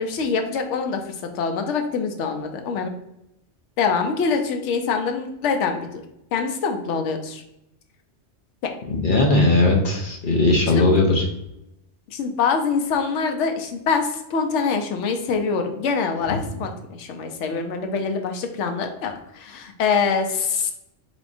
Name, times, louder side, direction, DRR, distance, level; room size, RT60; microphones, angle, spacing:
voice 1, 0.0-2.9 3.8-5.9 6.3-7.4 8.6-8.7 10.7-10.9 12.1-20.7, left 5 dB, 85° left, 5 dB, 0.9 m, -24 dB
voice 2, 8.9-11.2, left 2 dB, 50° left, 1 dB, 0.8 m, -18 dB
3.8 x 3.4 x 2.5 m, 0.85 s
omnidirectional pair, 1.2 m